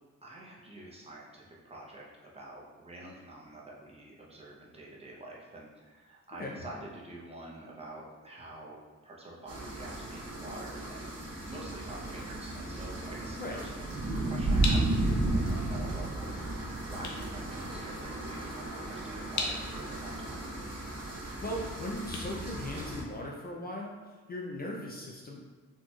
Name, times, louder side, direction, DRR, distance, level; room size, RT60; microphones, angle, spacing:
voice 1, 0.2-13.7 14.2-20.5, right 1 dB, 20° right, -4 dB, 0.7 m, -47 dB
sound 1, 9.5-23.0, right 2 dB, 55° right, 0.9 m, -34 dB
voice 2, 13.4-13.7 21.4-25.5, left 1 dB, 30° left, -2 dB, 0.4 m, -38 dB
sound 2, 14.6-23.4, left 3 dB, 70° left, 0.7 m, -41 dB
4.3 x 3.0 x 2.3 m, 1.4 s
cardioid pair, 105°, 30 cm